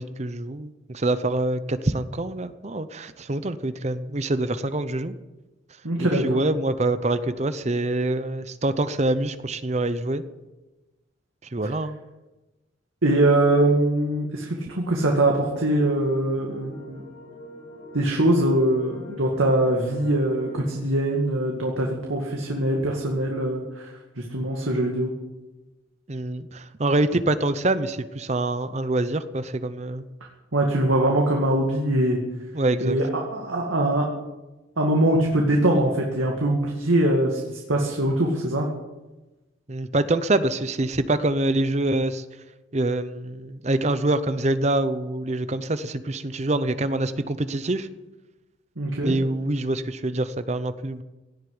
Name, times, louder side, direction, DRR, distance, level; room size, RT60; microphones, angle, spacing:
voice 1, 0.0-5.1 6.0-10.2 11.5-12.0 26.1-30.1 32.5-33.0 39.7-42.2 42.7-47.9 49.0-51.0, right 2 dB, 35° right, 12 dB, 0.7 m, -25 dB
voice 2, 5.8-6.4 13.0-17.0 17.9-23.9 24.2-25.1 30.5-32.2 32.8-34.1 34.8-38.7 48.8-49.1, right 1 dB, 85° right, 0 dB, 2.2 m, -22 dB
sound 1, 15.3-20.7, right 1 dB, 70° left, 6.5 m, -42 dB
17.5 x 8.2 x 9.6 m, 1.1 s
head